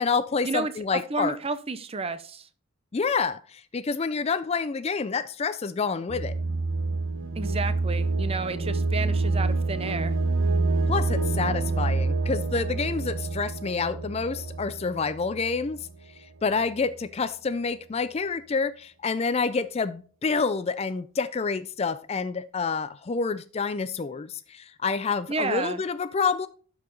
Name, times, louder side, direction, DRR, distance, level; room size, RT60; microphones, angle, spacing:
voice 1, 0.0-1.4 2.9-6.4 10.9-15.8 16.2-26.5, left 5 dB, 30° left, 14 dB, 0.3 m, -28 dB
voice 2, 1.1-2.5 7.4-10.1 25.3-25.8, right 3 dB, 25° right, 13 dB, 0.6 m, -31 dB
sound 1, 6.1-15.9, right 3 dB, 65° right, 0.8 m, -27 dB
12.0 x 4.8 x 3.8 m, 0.41 s
head